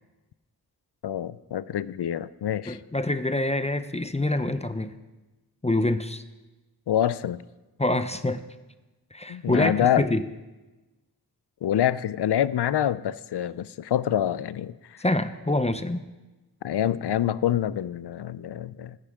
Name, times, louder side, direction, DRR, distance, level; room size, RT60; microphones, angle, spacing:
voice 1, 1.0-2.8 6.9-7.4 9.3-10.1 11.6-15.0 16.6-19.0, left 10 dB, 85° left, 17 dB, 0.5 m, -26 dB
voice 2, 2.7-4.9 5.6-6.2 7.8-8.4 9.1-10.2 15.0-16.0, left 2 dB, 15° left, 10 dB, 0.6 m, -26 dB
20.0 x 10.0 x 3.6 m, 1.1 s
wide cardioid pair, 65°, 39 cm